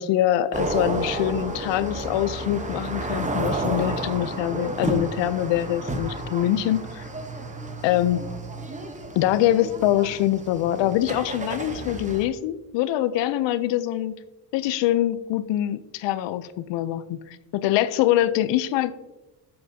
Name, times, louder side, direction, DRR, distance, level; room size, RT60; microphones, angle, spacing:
voice 1, 0.0-7.1 7.8-8.2 9.1-14.1 14.5-18.9, left 13 dB, 85° left, 14 dB, 0.6 m, -24 dB
sound 1, 0.5-12.2, right 2 dB, 15° right, 1.0 m, -31 dB
12.5 x 7.7 x 2.8 m, 1.1 s
cardioid pair, 135°, 42 cm